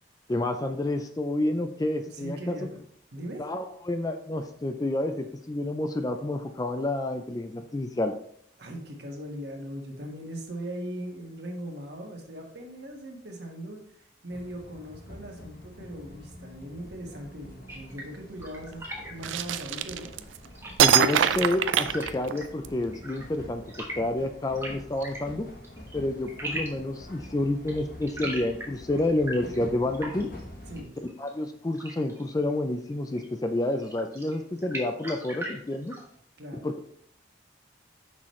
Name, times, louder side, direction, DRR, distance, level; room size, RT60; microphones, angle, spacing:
voice 1, 0.3-2.6 3.4-8.1 20.8-23.6 24.0-25.5 25.9-30.3 31.0-36.0 36.6-36.8, left 1 dB, 20° left, 7 dB, 0.4 m, -29 dB
voice 2, 2.0-2.8 3.1-3.5 8.6-20.1 30.7-30.9 36.4-36.7, equal, 55° right, 1 dB, 1.5 m, -39 dB
sound 1, 14.3-30.8, left 1 dB, 50° left, 1.5 m, -46 dB
sound 2, 17.7-36.2, right 1 dB, 15° right, 1.2 m, -43 dB
sound 3, 19.2-20.4 20.8-22.7, right 9 dB, 80° right, 0.4 m, -23 dB
6.1 x 5.9 x 3.1 m, 0.65 s
head